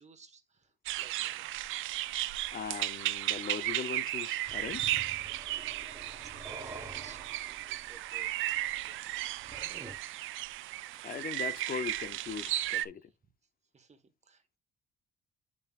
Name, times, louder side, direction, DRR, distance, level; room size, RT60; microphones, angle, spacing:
voice 1, 0.0-1.9 6.0-8.5 8.9-9.3 13.0-13.2 13.7-14.6, right 5 dB, 35° right, 1.5 m, -58 dB
sound 1, 0.9-12.9, right 15 dB, 85° right, 0.5 m, -35 dB
voice 2, 2.5-4.9 11.0-13.1, left 7 dB, 45° left, 0.7 m, -39 dB
sound 2, 4.4-10.0, right 2 dB, 15° right, 1.3 m, -49 dB
9.1 x 5.5 x 2.5 m
cardioid pair, 90°, 20 cm